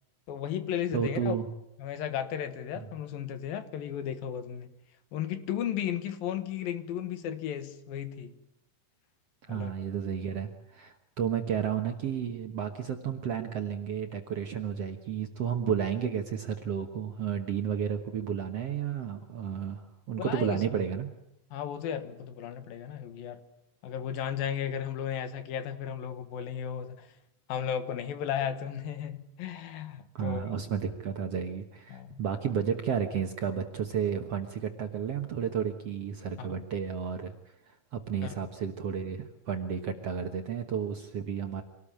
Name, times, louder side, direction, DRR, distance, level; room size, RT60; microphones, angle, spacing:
voice 1, 0.3-1.4 1.8-4.7 5.1-8.4 9.5-9.7 20.2-20.6 21.5-23.4 23.8-27.1 27.5-30.6 31.9-32.2 36.4-36.6 38.2-38.3, left 9 dB, 75° left, 3.1 m, -34 dB
voice 2, 0.9-1.5 2.8-2.9 9.4-21.1 30.2-37.3 37.7-41.6, right 8 dB, 60° right, 1.8 m, -32 dB
25.5 x 18.5 x 8.8 m
omnidirectional pair, 4.3 m